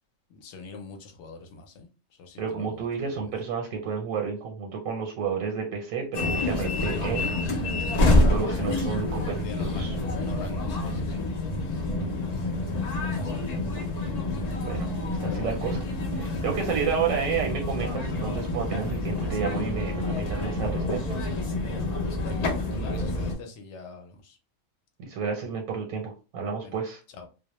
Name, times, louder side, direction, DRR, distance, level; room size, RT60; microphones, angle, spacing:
voice 1, 0.3-1.9 2.2-3.2 8.6-9.0 9.3-9.9 10.2-11.1 13.1-13.3 15.2-15.6 22.1-24.4 26.6-26.8 27.1-27.3, left 4 dB, 65° left, 0.8 m, -43 dB
voice 2, 2.4-7.4 8.1-9.9 10.5-10.6 14.6-15.8 16.1-21.0 25.0-27.0, right 6 dB, 85° right, 1.0 m, -31 dB
sound 1, 6.1-23.3, left 2 dB, 85° left, 0.3 m, -28 dB
Piano, 19.3-22.1, right 3 dB, 55° right, 0.7 m, -48 dB
2.2 x 2.0 x 2.8 m
omnidirectional pair, 1.4 m